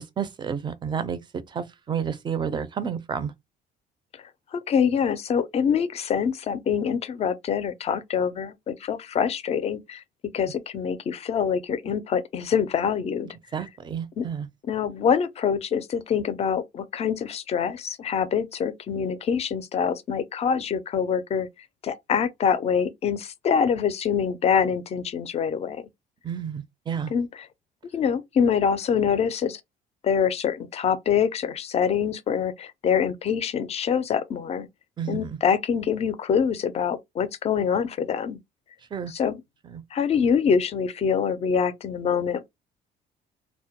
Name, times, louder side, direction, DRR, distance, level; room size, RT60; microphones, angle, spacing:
voice 1, 0.0-3.3 13.5-14.5 26.2-27.1 35.0-35.4 38.9-39.1 39.6-39.8, right 7 dB, 25° right, 0.4 m, -31 dB
voice 2, 4.5-10.0 10.3-13.4 14.2-14.3 14.7-25.9 27.1-27.5 27.9-29.6 30.0-34.7 35.1-38.4 39.1-39.4 39.9-42.4, left 7 dB, 40° left, 0.4 m, -25 dB
2.1 x 2.0 x 2.8 m
cardioid pair, 110°, 17 cm